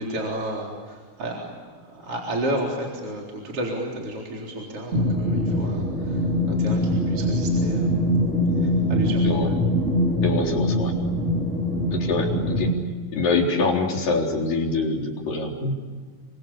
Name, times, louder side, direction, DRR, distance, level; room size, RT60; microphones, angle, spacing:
voice 1, 0.0-8.0 8.6-9.3, right 1 dB, 40° right, -1 dB, 4.6 m, -32 dB
sound 1, 4.9-12.7, left 1 dB, 20° right, 3.6 m, -23 dB
voice 2, 10.2-10.9 11.9-12.7 13.1-15.7, left 3 dB, 65° left, 0 dB, 5.6 m, -25 dB
29.0 x 25.0 x 7.0 m, 1.5 s
omnidirectional pair, 4.3 m